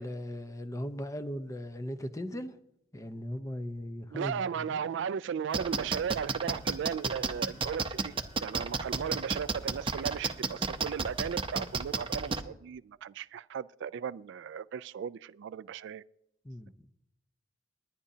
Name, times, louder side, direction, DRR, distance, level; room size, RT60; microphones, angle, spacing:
voice 1, 0.0-2.5 2.9-4.8 16.4-16.7, equal, 15° left, 0.8 m, -38 dB
voice 2, 4.1-8.1 8.4-16.0, right 7 dB, 65° right, 0.3 m, -36 dB
sound 1, 5.5-12.4, right 4 dB, 25° right, 0.8 m, -31 dB
20.0 x 10.0 x 2.8 m
head